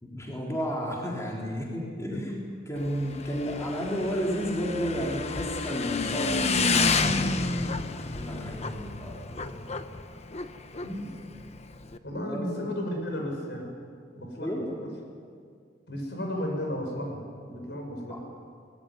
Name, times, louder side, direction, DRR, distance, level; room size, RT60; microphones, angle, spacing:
voice 1, 0.0-2.4 2.7-9.6 12.3-12.6 14.4-14.9 18.1-18.2, equal, 15° left, -2 dB, 3.7 m, -32 dB
Motorcycle / Engine, 2.8-12.0, left 4 dB, 35° left, 1.0 m, -30 dB
voice 2, 10.8-11.1 12.0-13.7 14.1-14.9 15.9-18.2, equal, 65° left, 2 dB, 6.5 m, -34 dB
24.0 x 19.0 x 9.7 m, 2.1 s
head